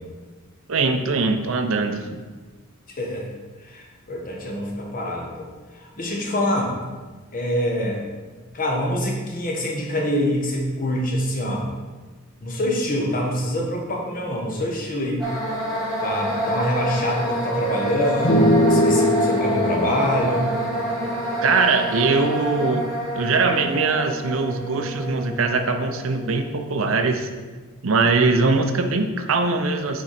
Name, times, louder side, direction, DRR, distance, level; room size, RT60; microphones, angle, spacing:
voice 1, 0.7-2.2 21.4-22.9 23.1-27.3 27.8-30.0, right 3 dB, 65° right, 6 dB, 0.6 m, -21 dB
voice 2, 2.9-3.3 3.6-5.5 5.7-6.7 7.3-8.1 8.5-11.7 12.4-15.2 16.0-20.5, left 1 dB, 40° left, 0 dB, 1.3 m, -25 dB
sound 1, 15.2-27.1, right 1 dB, ahead, 2.1 m, -28 dB
sound 2, 18.2-21.8, left 1 dB, 65° left, 1.5 m, -21 dB
7.5 x 4.9 x 4.3 m, 1.3 s
head